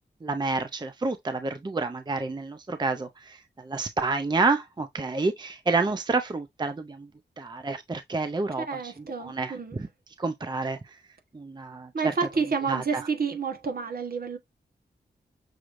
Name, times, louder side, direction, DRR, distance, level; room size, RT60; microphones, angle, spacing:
voice 1, 0.2-7.1 7.4-9.9 10.2-10.8 11.3-12.2 12.7-13.1, right 3 dB, 25° right, 0.5 m, -29 dB
voice 2, 8.6-9.8 11.9-14.4, right 5 dB, 55° right, 1.1 m, -29 dB
6.3 x 3.1 x 2.5 m
wide cardioid pair, 100°, 18 cm